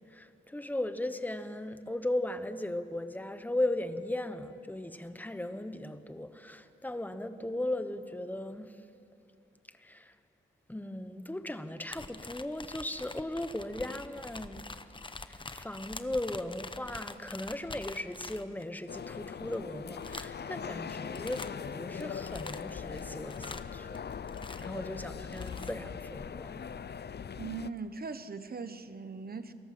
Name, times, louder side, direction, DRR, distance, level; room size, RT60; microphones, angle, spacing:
voice 1, 0.0-8.8 9.8-10.1 10.7-14.6 15.3-21.4 21.7-24.0 24.6-26.7, left 1 dB, 10° left, 10 dB, 1.1 m, -37 dB
sound 1, 11.9-18.8 19.5-19.6 20.0-20.5 20.9-21.6 22.0-24.8 25.2-25.8, left 3 dB, 25° left, 0.9 m, -45 dB
sound 2, 18.9-27.7, left 7 dB, 55° left, 0.6 m, -41 dB
voice 2, 27.4-29.5, right 4 dB, 45° right, 11 dB, 1.1 m, -40 dB
29.5 x 21.0 x 7.8 m, 2.6 s
wide cardioid pair, 135°, 21 cm